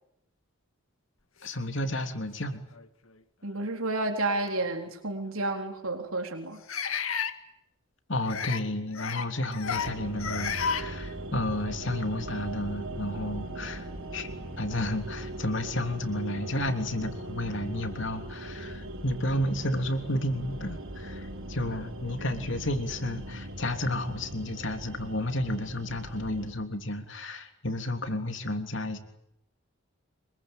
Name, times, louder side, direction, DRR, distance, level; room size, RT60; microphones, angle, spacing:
voice 1, 1.4-2.6 8.1-14.3 14.6-29.0, left 1 dB, 60° left, 7 dB, 3.3 m, -32 dB
sound 1, 1.9-2.0 2.7-2.9 4.5-4.6 6.7-7.3 8.3-8.6 8.9-9.3 9.5-9.9 10.2-10.8, left 6 dB, 80° left, 2.0 m, -31 dB
voice 2, 3.4-6.6, right 2 dB, 85° right, 4 dB, 3.9 m, -31 dB
sound 2, 9.6-26.5, right 1 dB, 70° right, 4.3 m, -40 dB
26.0 x 23.0 x 9.2 m, 0.80 s
head